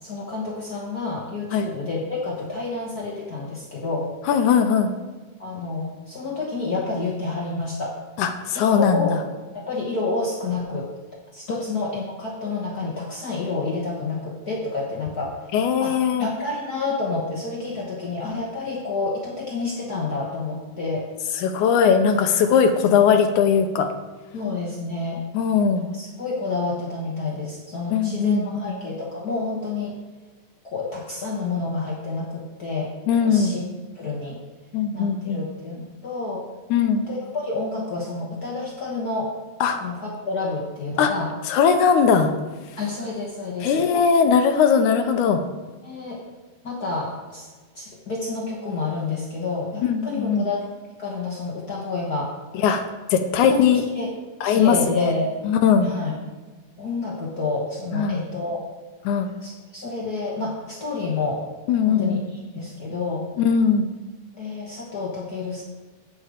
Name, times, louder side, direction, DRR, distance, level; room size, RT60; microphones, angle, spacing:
voice 1, 0.0-4.1 5.4-8.0 8.5-9.1 9.5-10.9 11.3-15.3 15.8-21.0 24.3-25.2 25.8-30.0 30.6-32.9 33.2-33.6 33.9-34.4 34.9-36.4 37.1-39.3 39.8-41.3 42.8-43.9 45.8-46.2 46.6-47.5 47.7-50.6 51.0-52.3 53.5-54.1 54.4-55.3 55.8-56.2 56.8-58.6 59.4-61.4 61.8-63.3 64.3-65.6, left 3 dB, 60° left, -3 dB, 0.9 m, -29 dB
voice 2, 4.3-4.9 8.2-9.2 15.5-16.3 21.4-23.9 25.3-25.9 27.9-28.8 33.1-33.5 34.7-35.4 36.7-37.1 39.6-39.8 41.0-41.1 41.5-42.3 43.6-45.4 49.8-50.5 52.5-53.8 54.4-55.1 55.4-55.9 57.9-58.2 59.1-59.3 61.7-62.2 63.4-63.9, left 6 dB, 80° left, 7 dB, 2.1 m, -19 dB
8.4 x 7.4 x 5.0 m, 1.3 s
omnidirectional pair, 3.6 m